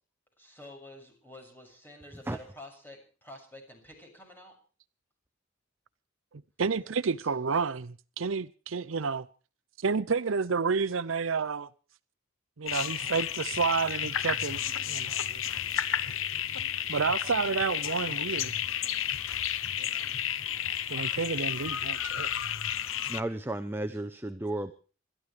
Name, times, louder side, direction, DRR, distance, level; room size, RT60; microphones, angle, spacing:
voice 1, 0.4-4.5 6.8-7.8, left 1 dB, 10° left, 6.7 m, -50 dB
voice 2, 6.6-9.3 9.8-11.7 12.6-15.4 16.9-18.6 19.8-20.1 20.9-22.3, right 5 dB, 70° right, 0.6 m, -30 dB
sound 1, 12.7-23.2, left 10 dB, 75° left, 0.8 m, -32 dB
voice 3, 23.1-24.7, right 1 dB, 10° right, 0.8 m, -33 dB
27.0 x 13.0 x 3.4 m
head